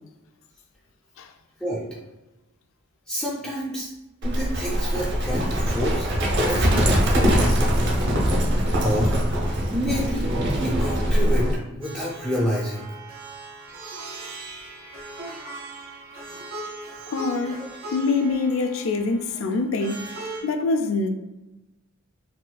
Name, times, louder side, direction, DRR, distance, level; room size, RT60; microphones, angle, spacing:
voice 1, 3.1-3.9 4.2-6.1 6.5-7.6 8.8-12.9 17.6-17.8, equal, 5° left, 0.5 m, -29 dB
Livestock farm animals working animals, 4.2-11.6, equal, 55° right, 0.6 m, -22 dB
Plucked string instrument, 11.8-20.4, right 2 dB, 90° right, 1.2 m, -39 dB
voice 2, 17.1-17.6 17.9-20.1 20.4-21.1, left 3 dB, 65° left, 0.4 m, -24 dB
4.2 x 2.4 x 2.2 m
head